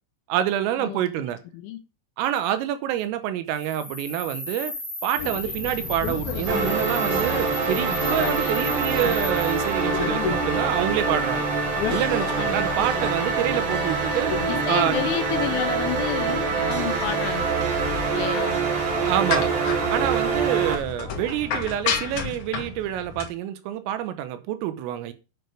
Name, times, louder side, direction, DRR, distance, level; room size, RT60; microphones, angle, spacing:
voice 1, 0.3-1.4 2.2-4.7 5.0-11.5 11.9-14.3 14.7-15.0 19.1-19.5 19.9-25.1, right 11 dB, 85° right, 3.6 m, -27 dB
sound 1, 3.5-9.8, left 1 dB, 40° left, 2.2 m, -35 dB
sound 2, 5.2-23.3, left 6 dB, 60° left, 2.1 m, -33 dB
sound 3, 6.5-20.8, right 4 dB, 60° right, 4.4 m, -25 dB
voice 2, 12.4-12.7 14.5-17.5 18.1-18.6, left 12 dB, 75° left, 3.4 m, -30 dB
8.6 x 6.8 x 6.5 m
omnidirectional pair, 5.9 m